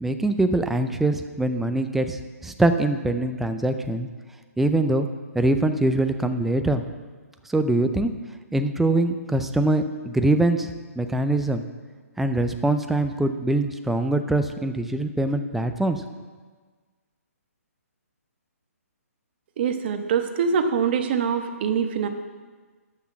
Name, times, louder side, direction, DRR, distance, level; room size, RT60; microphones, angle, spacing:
voice 1, 0.0-4.1 4.6-5.1 5.3-6.8 7.5-8.1 8.5-11.6 12.2-16.0, right 2 dB, 5° right, 8 dB, 0.4 m, -23 dB
voice 2, 19.6-22.1, right 6 dB, 40° right, 7 dB, 1.1 m, -24 dB
13.0 x 6.1 x 7.5 m, 1.4 s
hypercardioid pair, 150°, 8 cm